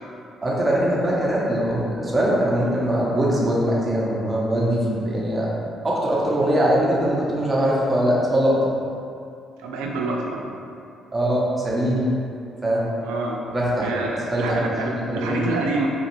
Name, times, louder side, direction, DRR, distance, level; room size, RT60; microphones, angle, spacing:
voice 1, 0.4-5.5 5.8-8.6 11.1-12.1 12.6-12.8 13.5-13.9 14.3-15.5, right 1 dB, 25° right, -6 dB, 0.8 m, -22 dB
voice 2, 9.6-10.5 13.0-13.4 13.8-15.9, right 3 dB, 90° right, 0 dB, 0.3 m, -27 dB
2.9 x 2.3 x 3.0 m, 2.5 s
supercardioid pair, 65°, 0 cm